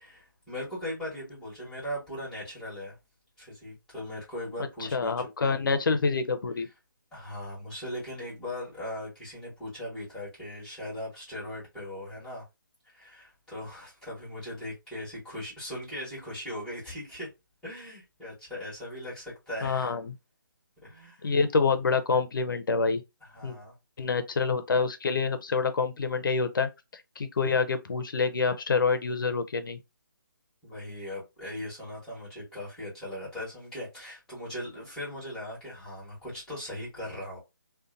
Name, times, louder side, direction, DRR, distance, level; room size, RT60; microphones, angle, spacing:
voice 1, 0.0-3.0 3.4-5.1 5.4-5.6 7.1-12.4 12.9-17.3 17.6-19.9 20.8-21.3 23.2-23.7 30.6-37.4, left 1 dB, 5° left, 1.2 m, -39 dB
voice 2, 4.8-6.7 19.6-20.1 21.2-23.0 23.4-23.6 24.0-26.7 27.2-29.8, left 4 dB, 70° left, 0.5 m, -27 dB
2.7 x 2.2 x 2.5 m
hypercardioid pair, 155°, 11 cm